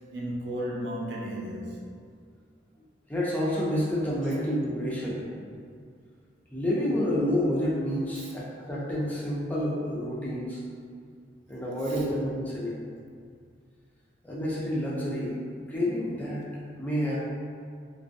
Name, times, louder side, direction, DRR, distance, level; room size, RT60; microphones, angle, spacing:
voice 1, 0.1-1.8 8.2-8.3 11.9-12.0, equal, 85° right, -3 dB, 0.5 m, -34 dB
voice 2, 3.1-5.2 6.5-10.6 11.5-12.8 14.2-15.3 15.7-17.1, equal, 10° left, -7 dB, 0.4 m, -29 dB
2.5 x 2.1 x 2.5 m, 2.2 s
head